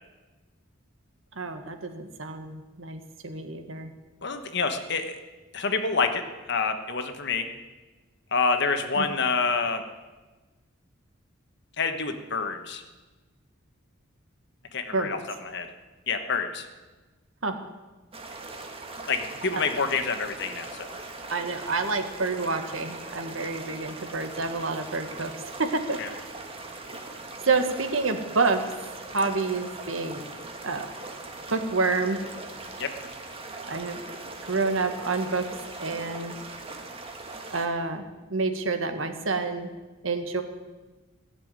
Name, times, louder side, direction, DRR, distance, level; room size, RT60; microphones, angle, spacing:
voice 1, 1.3-3.9 9.0-9.1 14.9-15.2 17.4-17.6 19.5-19.6 21.3-26.3 27.5-28.6 29.1-30.2 30.6-30.9 31.5-32.2 33.7-34.0 34.4-35.4 35.8-36.3 37.5-39.7 40.0-40.4, right 3 dB, 70° right, 6 dB, 1.5 m, -28 dB
voice 2, 4.2-5.2 5.5-7.5 8.3-9.8 11.8-12.8 14.7-15.2 15.4-15.7 16.1-16.7 19.1-20.9 26.0-26.1 32.8-32.9, left 4 dB, 55° left, 7 dB, 1.3 m, -27 dB
sound 1, 18.1-37.7, right 3 dB, 30° right, 1.5 m, -40 dB
16.0 x 7.0 x 9.6 m, 1.2 s
head